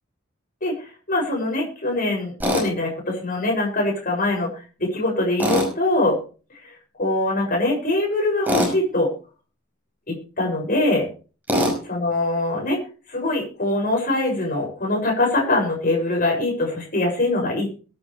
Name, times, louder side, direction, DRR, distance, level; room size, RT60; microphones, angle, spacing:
voice 1, 0.6-6.2 6.6-9.1 10.1-11.1 11.9-12.8 13.1-17.7, left 2 dB, 40° left, 0 dB, 6.9 m, -23 dB
Tools, 2.4-2.7 5.4-5.7 8.5-8.7 11.5-11.8, equal, 10° right, 5.6 m, -21 dB
22.5 x 10.0 x 3.3 m, 0.36 s
head